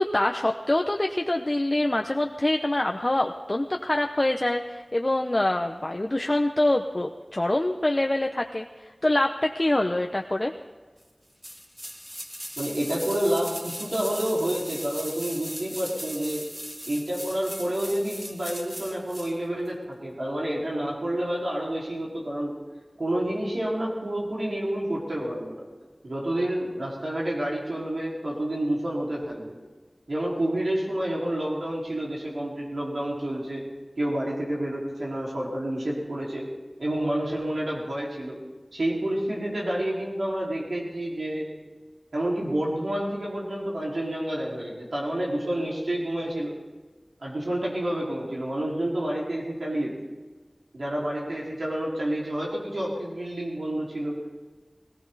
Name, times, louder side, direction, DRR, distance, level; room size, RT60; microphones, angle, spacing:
voice 1, 0.0-10.5, left 1 dB, 35° left, 3 dB, 0.8 m, -25 dB
sound 1, 11.4-19.3 19.6-19.7, equal, 20° right, 2.4 m, -38 dB
voice 2, 12.6-16.4 16.8-22.6 23.0-25.6 26.0-29.6 30.1-33.6 34.0-36.5 36.8-38.4 38.7-41.5 42.1-46.6 47.2-49.9 50.7-54.3, right 1 dB, 90° right, -4 dB, 4.7 m, -29 dB
18.5 x 18.5 x 4.1 m, 1.3 s
wide cardioid pair, 55°, 0 cm